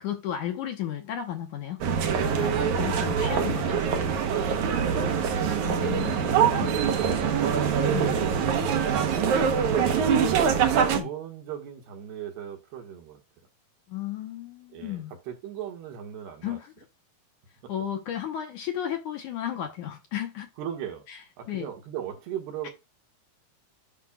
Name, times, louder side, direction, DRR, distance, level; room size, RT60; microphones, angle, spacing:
voice 1, 0.0-1.8 2.2-3.8 5.6-6.8 7.9-8.2 10.9-11.1 13.9-15.1 16.4-16.8 17.7-20.5 21.1-21.2 21.5-21.7 22.6-22.7, left 10 dB, 65° left, 2.1 m, -34 dB
sound 1, 1.8-11.0, right 7 dB, 70° right, 1.9 m, -24 dB
voice 2, 3.4-3.8 4.2-5.4 6.5-7.7 9.0-10.5 10.9-13.2 14.7-16.6 17.6-17.7 20.6-21.0 21.4-22.7, right 9 dB, 90° right, 3.7 m, -37 dB
11.5 x 5.5 x 2.3 m
omnidirectional pair, 4.6 m